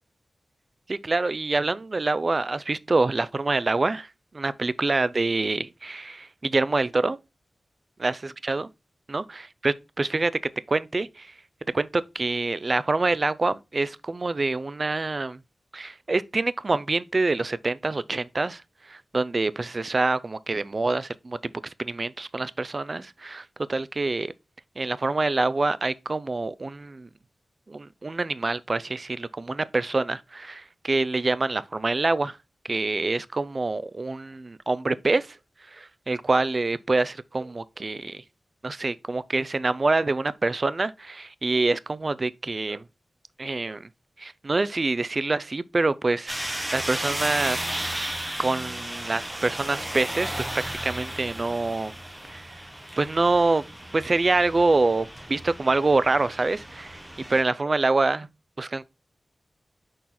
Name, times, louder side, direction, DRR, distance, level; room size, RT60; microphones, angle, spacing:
voice 1, 0.9-4.1 4.3-7.2 8.0-8.7 9.1-9.2 9.6-10.3 10.7-11.3 11.7-15.4 15.7-18.6 18.9-21.4 21.6-24.3 24.8-27.1 27.7-32.4 32.7-35.4 35.7-38.2 38.6-42.8 43.4-43.9 44.2-47.6 48.4-51.9 52.3-52.5 53.0-53.6 53.9-57.0 57.3-58.3 58.6-58.8, right 3 dB, 40° right, 0.4 m, -26 dB
sound 1, 46.3-57.4, right 1 dB, 15° right, 1.2 m, -34 dB
6.2 x 4.2 x 4.0 m
wide cardioid pair, 95°, 0 cm